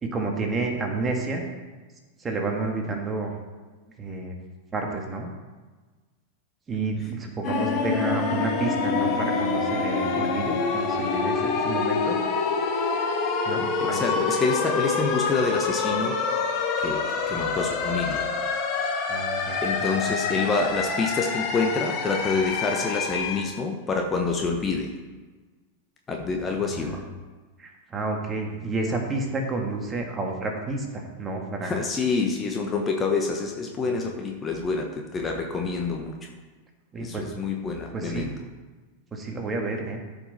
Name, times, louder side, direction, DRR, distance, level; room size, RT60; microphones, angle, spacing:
voice 1, 0.0-1.4 2.2-3.3 4.0-4.3 4.7-5.3 6.7-12.2 13.5-14.2 17.3-17.4 19.1-20.1 20.3-20.4 26.5-27.0 27.6-31.7 36.9-37.3 37.9-38.3 39.1-40.0, right 3 dB, 20° right, 2 dB, 1.8 m, -30 dB
sound 1, 7.4-23.4, left 4 dB, 35° left, 1.5 m, -26 dB
voice 2, 13.8-16.2 16.8-18.3 19.6-24.9 26.1-27.0 31.6-36.3 37.0-38.3, left 4 dB, 20° left, 2 dB, 1.1 m, -27 dB
13.5 x 5.6 x 4.2 m, 1.3 s
figure-of-eight pair, 90°, 0 cm